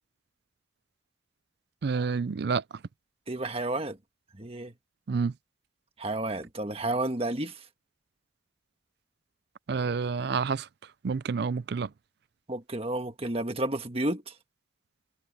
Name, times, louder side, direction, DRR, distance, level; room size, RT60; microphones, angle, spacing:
voice 1, 1.8-2.6 5.1-5.3 9.7-10.7 11.0-11.9, right 5 dB, 55° right, 0.4 m, -28 dB
voice 2, 3.3-4.0 4.4-4.7 6.0-7.6 12.5-14.3, right 2 dB, 30° right, 1.5 m, -31 dB
head